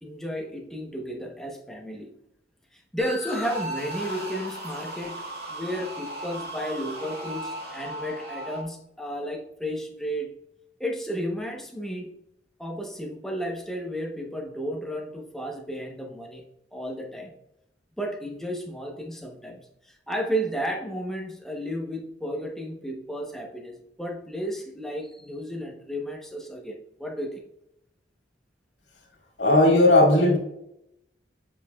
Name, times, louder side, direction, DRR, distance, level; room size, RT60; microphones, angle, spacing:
voice 1, 0.0-2.1 2.7-10.3 10.8-12.1 12.6-16.4 16.7-17.3 18.0-27.4, equal, ahead, 1 dB, 0.9 m, -33 dB
sound 1, 3.0-8.6, right 1 dB, 70° right, 1.9 m, -36 dB
voice 2, 29.4-30.4, left 1 dB, 85° left, 0 dB, 2.1 m, -17 dB
7.9 x 5.2 x 2.3 m, 0.81 s
head